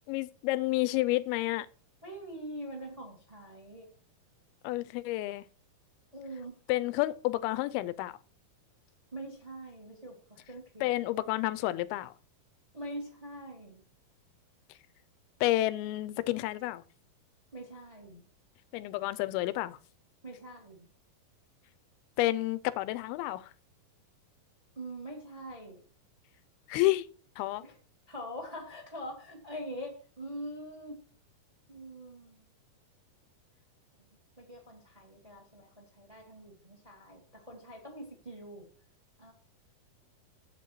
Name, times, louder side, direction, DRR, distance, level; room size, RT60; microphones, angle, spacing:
voice 1, 0.1-1.7 4.6-5.5 6.7-8.2 10.8-12.1 15.4-16.8 18.7-19.8 22.2-23.5 26.7-27.1 27.4-27.6, left 17 dB, 85° left, 2.4 m, -30 dB
voice 2, 2.0-3.9 6.1-6.6 9.1-10.9 12.7-13.8 17.5-18.2 20.2-20.9 24.8-25.8 27.6-27.7 28.1-31.0 31.7-32.5 34.0-34.1 34.4-38.7 39.2-39.3, equal, 10° right, 1.9 m, -44 dB
13.5 x 8.4 x 3.0 m
omnidirectional pair, 4.5 m